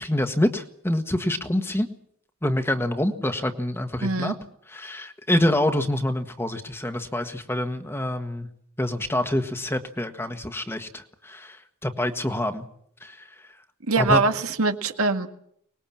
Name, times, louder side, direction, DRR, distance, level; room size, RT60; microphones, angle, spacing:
voice 1, 0.0-1.9 2.4-4.3 4.7-8.5 8.8-12.6 13.0-13.2 14.0-14.2, left 1 dB, 10° left, 7 dB, 1.5 m, -26 dB
voice 2, 4.0-4.3 13.9-15.3, right 3 dB, 90° right, 6 dB, 2.0 m, -23 dB
24.5 x 20.5 x 7.3 m, 0.70 s
head